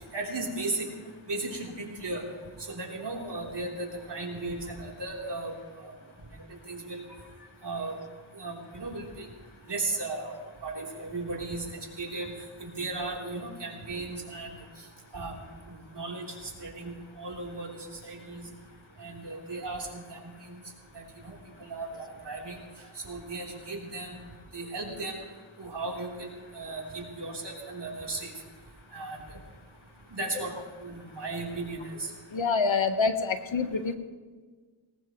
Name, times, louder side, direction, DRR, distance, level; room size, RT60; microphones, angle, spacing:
voice 1, 0.1-0.9 1.3-2.2 2.7-5.9 6.7-7.0 7.6-7.9 8.4-9.3 9.7-10.4 10.6-11.6 12.0-12.3 12.6-14.5 15.1-15.3 15.7-17.7 18.0-18.4 19.0-20.6 20.9-22.6 23.0-24.2 24.5-25.2 25.6-28.3 28.9-29.2 30.1-30.5 30.8-32.1, right 2 dB, 55° right, -1 dB, 3.7 m, -36 dB
voice 2, 32.3-33.9, left 4 dB, 70° left, 8 dB, 1.3 m, -26 dB
19.5 x 18.5 x 3.1 m, 1.4 s
cardioid pair, 50°, 48 cm